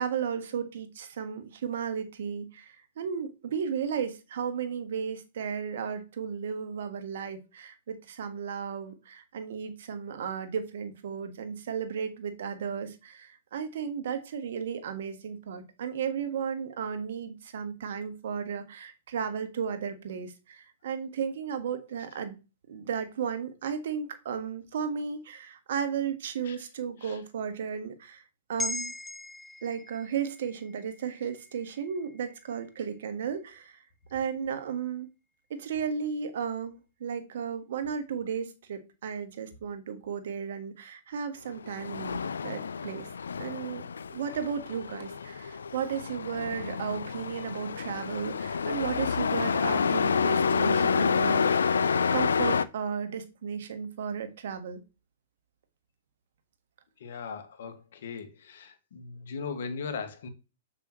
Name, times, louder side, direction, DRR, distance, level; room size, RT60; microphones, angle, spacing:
voice 1, 0.0-22.4 22.7-28.2 28.5-28.9 29.6-33.8 34.1-35.1 35.5-43.1 43.4-43.8 44.1-54.8, right 7 dB, 70° right, 1.5 m, -34 dB
sound 1, 28.6-33.1 33.5-33.6, left 2 dB, 5° left, 0.3 m, -41 dB
Truck, 41.5-52.6, left 6 dB, 90° left, 0.5 m, -28 dB
voice 2, 57.0-60.3, left 5 dB, 70° left, 1.9 m, -38 dB
7.4 x 6.8 x 3.1 m
hypercardioid pair, 125°, 0 cm